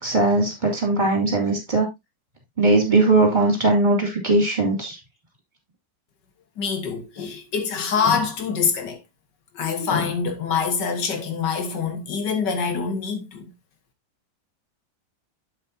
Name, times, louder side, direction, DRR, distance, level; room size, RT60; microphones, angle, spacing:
voice 1, 0.0-1.9 2.6-5.0, right 2 dB, 25° right, 3.1 m, -19 dB
voice 2, 6.6-9.0 9.5-13.5, left 6 dB, 65° left, 2.1 m, -25 dB
8.2 x 7.7 x 2.8 m
omnidirectional pair, 2.0 m